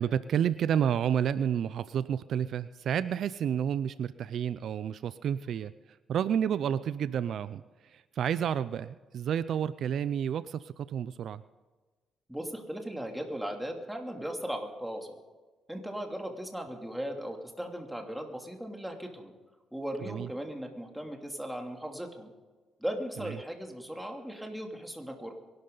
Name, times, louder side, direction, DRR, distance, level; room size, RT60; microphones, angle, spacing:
voice 1, 0.0-5.7 6.1-11.4 20.0-20.3 23.2-23.4, right 9 dB, 65° right, 15 dB, 0.4 m, -30 dB
voice 2, 12.3-15.1 15.7-19.3 19.7-22.3 22.8-25.3, equal, 5° right, 2 dB, 2.8 m, -37 dB
23.0 x 12.0 x 4.0 m, 1.3 s
cardioid pair, 90°, 0 cm